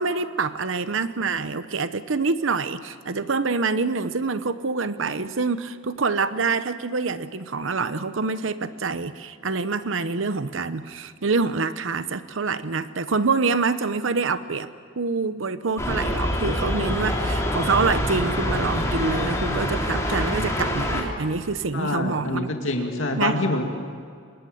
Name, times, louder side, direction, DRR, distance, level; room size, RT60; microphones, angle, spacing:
voice 1, 0.0-14.7 15.0-22.5 23.1-23.4, right 4 dB, 75° right, 12 dB, 0.8 m, -26 dB
sound 1, 15.8-21.0, left 1 dB, 15° left, 3.3 m, -25 dB
voice 2, 21.7-23.6, left 2 dB, 70° left, 3 dB, 2.4 m, -26 dB
26.5 x 21.5 x 7.9 m, 2.2 s
head